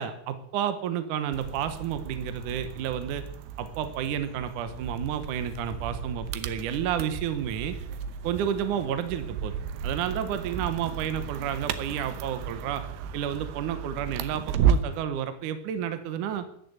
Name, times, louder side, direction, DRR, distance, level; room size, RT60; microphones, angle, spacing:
voice 1, 0.0-3.2 3.6-7.8 8.2-9.5 9.8-12.8 13.1-16.4, right 9 dB, 70° right, 10 dB, 2.2 m, -31 dB
sound 1, 1.3-15.0, right 7 dB, 85° right, 3.0 m, -33 dB
13.5 x 11.0 x 7.9 m, 0.67 s
omnidirectional pair, 4.7 m